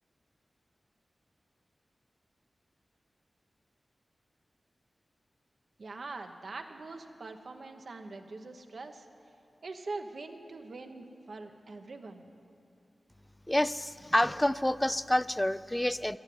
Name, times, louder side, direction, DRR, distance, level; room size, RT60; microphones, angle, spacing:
voice 1, 5.8-9.1 9.6-12.2, right 3 dB, 70° right, 5 dB, 1.1 m, -43 dB
voice 2, 13.5-16.2, left 1 dB, 15° left, 17 dB, 0.4 m, -28 dB
12.0 x 11.5 x 9.5 m, 2.6 s
cardioid pair, 45°, 0 cm